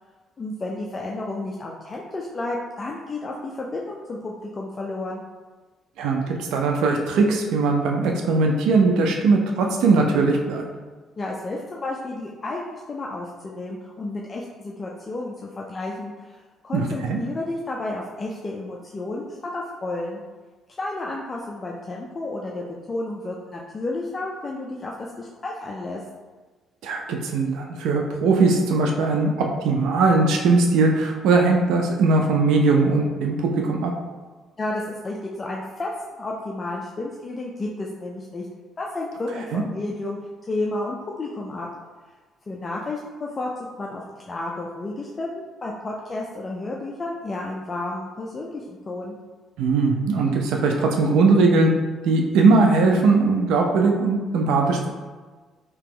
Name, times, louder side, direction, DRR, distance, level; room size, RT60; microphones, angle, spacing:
voice 1, 0.4-5.2 11.2-16.4 16.6-20.2 20.8-26.0 34.6-35.9 36.2-38.5 38.8-40.2 40.5-41.7 42.5-43.5 43.8-49.2, left 2 dB, 30° left, -2 dB, 0.4 m, -31 dB
voice 2, 6.0-10.6 16.7-17.2 26.8-33.9 39.5-39.6 49.6-51.7 52.0-54.9, right 3 dB, 85° right, 2 dB, 0.4 m, -20 dB
2.9 x 2.9 x 3.7 m, 1.4 s
cardioid pair, 100°, 0 cm